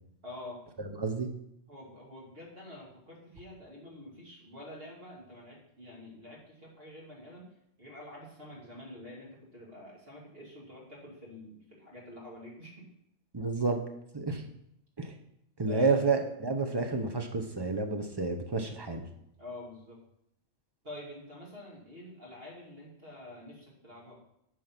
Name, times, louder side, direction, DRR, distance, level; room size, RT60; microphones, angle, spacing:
voice 1, 0.2-0.6 1.7-7.5 7.8-12.8 15.7-16.0 19.4-20.0 20.8-24.2, left 1 dB, 50° right, -4 dB, 2.7 m, -47 dB
voice 2, 13.3-13.8 14.1-14.4 15.0-15.1 15.6-19.1, right 4 dB, 25° right, 5 dB, 0.8 m, -30 dB
9.0 x 4.8 x 6.0 m, 0.78 s
omnidirectional pair, 1.3 m